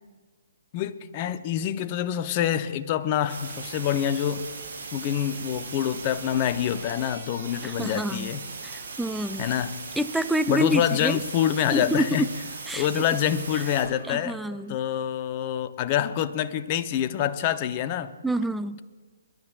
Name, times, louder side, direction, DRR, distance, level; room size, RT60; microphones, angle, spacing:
voice 1, 0.7-4.5 4.9-8.5 9.4-9.7 10.5-12.3 12.7-14.4 14.7-18.1, left 10 dB, 35° left, 11 dB, 0.7 m, -26 dB
sound 1, 3.3-13.8, right 4 dB, 60° right, 4.2 m, -39 dB
sound 2, 6.9-7.0 7.3-7.4 7.8-7.9 8.3-8.4 8.7-8.8 9.5-9.6 10.7-12.4 12.7-14.9, right 3 dB, 80° right, 2.7 m, -49 dB
voice 2, 7.6-8.3 8.6-9.5 10.0-11.2 11.7-12.3 12.7-12.9 14.1-14.8 18.2-18.8, right 1 dB, ahead, 11 dB, 0.4 m, -27 dB
28.5 x 12.0 x 2.4 m, 1.4 s
figure-of-eight pair, 130°, 0 cm